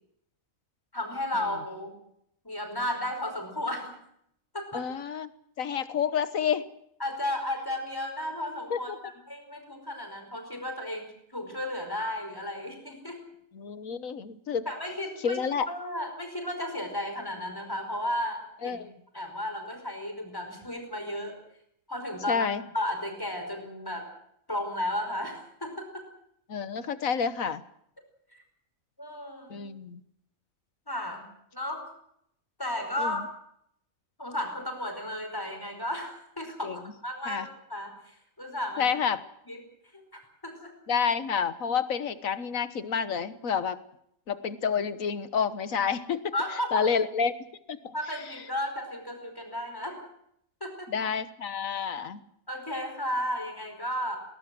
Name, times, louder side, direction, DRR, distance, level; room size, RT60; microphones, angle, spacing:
voice 1, 0.9-2.0 2.4-4.0 4.5-4.9 7.0-8.9 9.3-13.2 14.7-18.8 19.1-21.4 21.9-22.5 22.7-24.1 24.5-26.1 28.3-28.4 29.0-29.7 30.9-31.2 31.5-31.8 32.6-33.3 34.2-38.9 39.5-39.6 39.9-40.7 46.3-46.9 47.9-50.0 50.6-50.9 52.5-54.2, left 1 dB, 15° left, 4 dB, 5.1 m, -34 dB
voice 2, 4.7-5.3 5.6-6.7 8.7-9.0 13.5-14.7 15.2-15.7 18.6-18.9 22.3-22.6 26.5-27.6 29.5-30.0 33.0-33.2 36.6-36.8 37.3-37.5 38.8-39.2 40.9-43.8 44.3-46.3 46.7-47.3 47.7-47.9 50.9-52.2, left 6 dB, 85° left, 13 dB, 1.7 m, -29 dB
20.5 x 18.5 x 7.7 m, 0.73 s
omnidirectional pair, 1.4 m